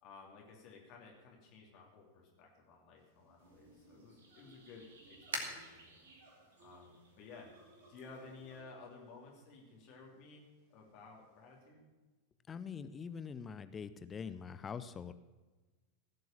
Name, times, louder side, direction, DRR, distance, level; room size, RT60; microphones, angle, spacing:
voice 1, 0.0-6.0 6.6-7.5 7.9-10.4 10.7-11.9, left 4 dB, 40° left, -1 dB, 3.0 m, -55 dB
sound 1, 3.0-11.7, right 2 dB, 45° right, 3.7 m, -65 dB
sound 2, 3.4-8.6, right 3 dB, 65° right, 2.5 m, -49 dB
voice 2, 12.5-15.1, left 6 dB, 20° left, 13 dB, 0.6 m, -44 dB
16.5 x 7.8 x 7.3 m, 1.3 s
figure-of-eight pair, 90°, 0 cm